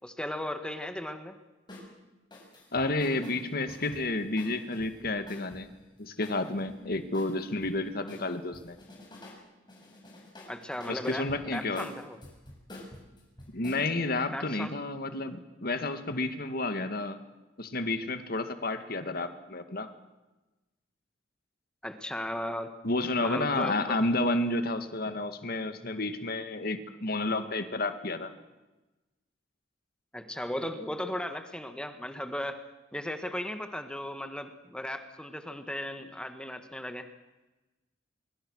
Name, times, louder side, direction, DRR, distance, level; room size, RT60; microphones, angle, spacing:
voice 1, 0.0-1.4 10.5-12.2 14.3-14.7 21.8-22.7 23.2-24.0 30.1-32.6 32.9-37.1, left 1 dB, 5° left, 7 dB, 1.5 m, -36 dB
sound 1, 1.7-1.9 2.3-5.6 6.2-7.7 8.1-9.4 9.7-13.8, left 1 dB, 25° left, 7.1 m, -48 dB
voice 2, 2.7-5.7 6.0-8.8 10.9-11.9 13.5-17.2 17.6-19.9 22.8-28.3, left 2 dB, 55° left, 8 dB, 2.0 m, -31 dB
25.0 x 23.5 x 6.4 m, 1.1 s
head